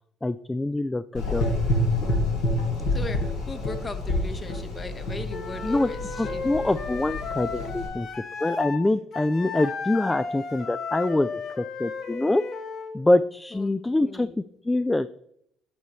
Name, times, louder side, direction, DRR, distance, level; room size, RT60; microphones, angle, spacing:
voice 1, 0.2-1.5 5.6-8.1 8.4-11.3 11.6-12.4 12.9-14.3 14.6-15.2, left 2 dB, 15° left, 14 dB, 0.3 m, -25 dB
Gurgling / Engine, 1.1-7.9, left 1 dB, 80° left, 3.4 m, -28 dB
voice 2, 2.9-6.5 13.6-13.7 14.0-14.3, left 3 dB, 30° left, 8 dB, 1.0 m, -38 dB
Wind instrument woodwind instrument, 5.3-8.8 9.1-12.9, left 5 dB, 55° left, 1.1 m, -34 dB
9.2 x 6.8 x 3.1 m, 0.72 s
hypercardioid pair, 60°, 0 cm